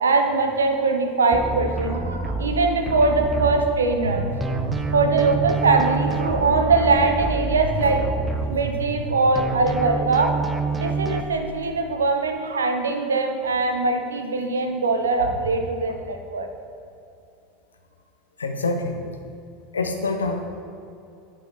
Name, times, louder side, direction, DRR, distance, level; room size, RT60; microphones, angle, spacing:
voice 1, 0.0-8.1 8.4-10.4 10.8-16.5, right 3 dB, 75° right, 5 dB, 0.5 m, -22 dB
sound 1, 1.3-4.1 4.4-9.1 9.4-11.2, right 3 dB, 15° right, 0.4 m, -28 dB
voice 2, 18.4-19.0 19.7-20.5, left 3 dB, 75° left, 5 dB, 0.5 m, -26 dB
10.5 x 3.8 x 2.8 m, 2.7 s
figure-of-eight pair, 75°, 0 cm